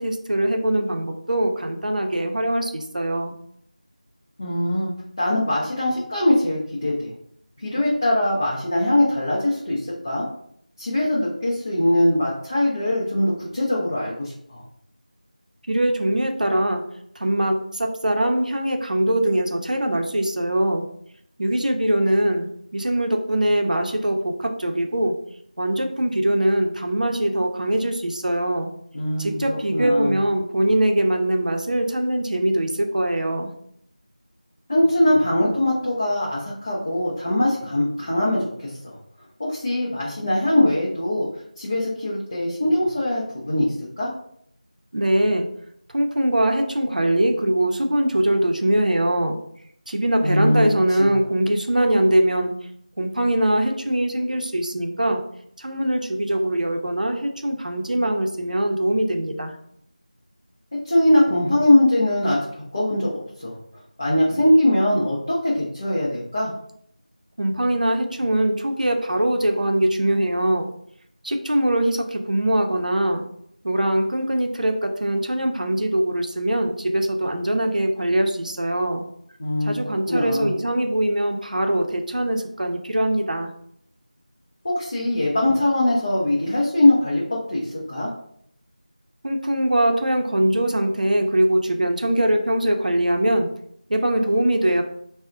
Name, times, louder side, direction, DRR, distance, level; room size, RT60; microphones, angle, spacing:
voice 1, 0.0-3.3 15.7-16.9 17.2-20.9 21.4-25.1 25.6-28.7 29.2-33.5 44.9-45.5 45.9-49.4 49.9-52.5 53.0-55.2 55.6-59.6 67.4-70.7 71.2-73.2 73.6-79.0 79.6-83.5 89.2-93.5 93.9-94.8, right 1 dB, 70° right, 4 dB, 0.5 m, -22 dB
voice 2, 4.4-4.9 5.2-7.1 7.6-10.3 10.8-14.6 28.9-29.4 29.7-30.2 34.7-39.0 39.4-41.3 41.6-44.1 50.2-50.7 51.0-51.1 60.8-63.1 63.4-63.6 64.0-66.5 79.4-80.5 84.6-88.1, left 1 dB, 20° left, -7 dB, 0.4 m, -21 dB
3.9 x 2.0 x 2.5 m, 0.69 s
figure-of-eight pair, 175°, 4 cm